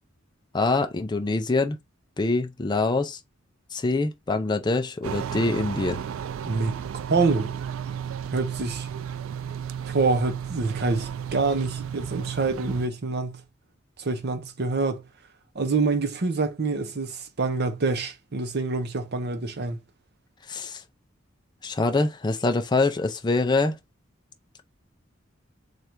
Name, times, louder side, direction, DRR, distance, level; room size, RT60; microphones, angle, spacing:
voice 1, 0.5-1.8 2.2-3.2 3.7-6.0 20.5-20.8 21.6-23.8, left 3 dB, 20° left, 0.4 m, -24 dB
sound 1, 5.0-12.9, right 8 dB, 90° right, 0.3 m, -33 dB
voice 2, 6.5-6.8 7.1-7.5 8.3-8.9 9.9-13.4 14.0-15.0 15.5-19.8, right 3 dB, 55° right, 0.7 m, -26 dB
3.2 x 2.4 x 4.3 m
head